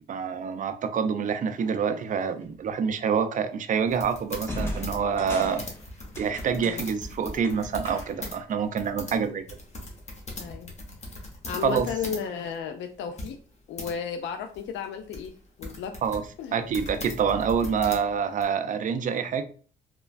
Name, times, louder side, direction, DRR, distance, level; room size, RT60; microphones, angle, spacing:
voice 1, 0.0-5.6 6.2-9.4 11.6-11.9 16.0-16.2 16.5-19.4, right 6 dB, 40° right, 0.4 m, -27 dB
sound 1, 2.4-2.7 4.5-8.4, left 1 dB, 10° left, 0.7 m, -38 dB
sound 2, 3.9-8.4 8.6-12.3 12.5-12.6 13.2-13.9 14.5-18.4, left 1 dB, 35° left, 1.0 m, -39 dB
voice 2, 10.4-10.7 11.0-13.4 13.7-15.3 15.6-16.0 16.4-16.6, left 7 dB, 65° left, 0.4 m, -34 dB
3.1 x 2.2 x 2.4 m
cardioid pair, 90°, 20 cm